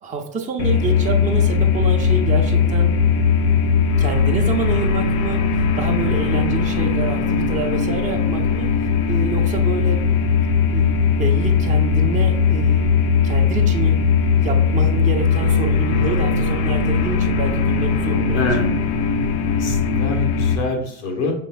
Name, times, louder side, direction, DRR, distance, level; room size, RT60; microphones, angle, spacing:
voice 1, 0.0-3.0 4.0-5.5 5.8-8.7 9.1-10.1 10.7-13.0 13.2-18.5, right 4 dB, 20° right, 1 dB, 0.7 m, -27 dB
sound 1, 0.6-20.6, left 5 dB, 65° left, 0.6 m, -19 dB
voice 2, 18.3-18.7 19.5-21.3, left 2 dB, 90° left, 1 dB, 1.2 m, -25 dB
5.3 x 3.1 x 2.3 m, 0.73 s
supercardioid pair, 95°, 33 cm